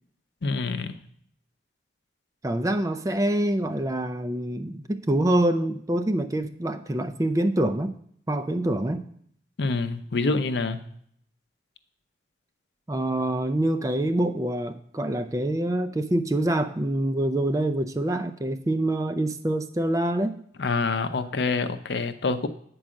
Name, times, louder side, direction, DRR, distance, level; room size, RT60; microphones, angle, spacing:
voice 1, 0.4-0.9 9.6-10.8 20.6-22.5, left 3 dB, 80° left, 10 dB, 0.6 m, -26 dB
voice 2, 2.4-8.0 8.3-9.1 12.9-20.4, right 1 dB, 20° right, 9 dB, 0.4 m, -25 dB
8.5 x 4.7 x 6.3 m, 0.66 s
head